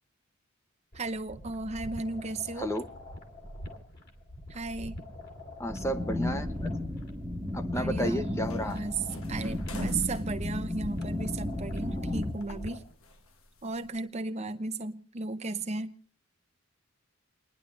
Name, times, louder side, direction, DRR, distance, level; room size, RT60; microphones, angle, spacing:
sound 1, 0.9-12.9, left 1 dB, 50° left, 2.9 m, -45 dB
voice 1, 0.9-2.7 4.5-5.0 7.7-8.2 8.6-8.9 9.3-12.8 13.6-15.9, right 3 dB, 30° right, 0.6 m, -35 dB
voice 2, 5.6-6.7 7.3-8.8, equal, 15° left, 0.8 m, -32 dB
sound 2, 5.7-12.3, left 1 dB, 10° right, 1.4 m, -34 dB
sound 3, 8.4-12.0 12.3-14.0, equal, 75° left, 1.2 m, -43 dB
30.0 x 10.5 x 2.6 m
head